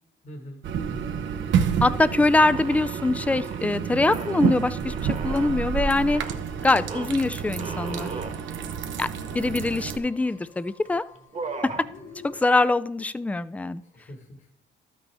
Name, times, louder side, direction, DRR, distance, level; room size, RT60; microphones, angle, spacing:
voice 1, 0.2-0.6 0.9-1.2 13.8-14.5, equal, 35° left, 2 dB, 1.4 m, -44 dB
sound 1, 0.6-10.0, right 7 dB, 70° right, 0.7 m, -29 dB
voice 2, 1.8-6.2 6.6-8.1 9.0-9.1 9.3-11.0 11.6-11.7 12.2-13.8, left 2 dB, 5° left, 15 dB, 0.3 m, -23 dB
sound 2, 2.4-3.6 4.1-5.6 6.1-6.4 6.9-7.1 7.6-8.4 9.0-9.1 9.3-10.1 10.7-10.9 11.1-11.9, right 4 dB, 35° right, 1.2 m, -37 dB
sound 3, 3.2-12.4, left 3 dB, 70° left, 2.4 m, -52 dB
12.5 x 6.1 x 3.3 m, 0.69 s
cardioid pair, 90°, 20 cm